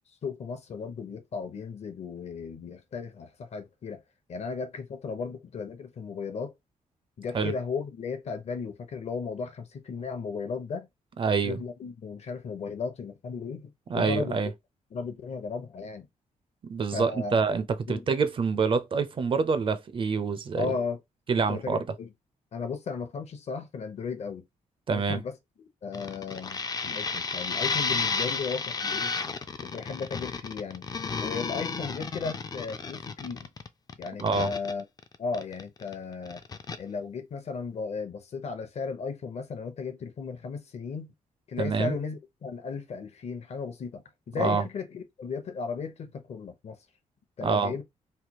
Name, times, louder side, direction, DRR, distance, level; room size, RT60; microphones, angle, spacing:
voice 1, 0.2-4.0 4.3-6.5 7.2-10.9 11.4-14.4 14.9-16.1 16.9-17.5 17.9-18.1 20.6-21.0 21.5-22.1 22.5-24.4 24.9-25.4 25.8-29.1 29.6-30.9 31.2-33.5 34.0-34.8 35.2-36.4 36.8-41.1 41.5-46.8 47.4-47.8, left 5 dB, 55° left, 0.8 m, -35 dB
voice 2, 11.2-11.6 13.9-14.5 16.6-20.7 21.3-21.8 24.9-25.2 34.2-34.5 41.6-42.0 44.4-44.6 47.4-47.7, right 5 dB, 40° right, 0.5 m, -26 dB
sound 1, 25.9-35.9 36.2-36.8, left 4 dB, 30° left, 0.4 m, -32 dB
3.3 x 2.2 x 2.9 m
cardioid pair, 120°, 14 cm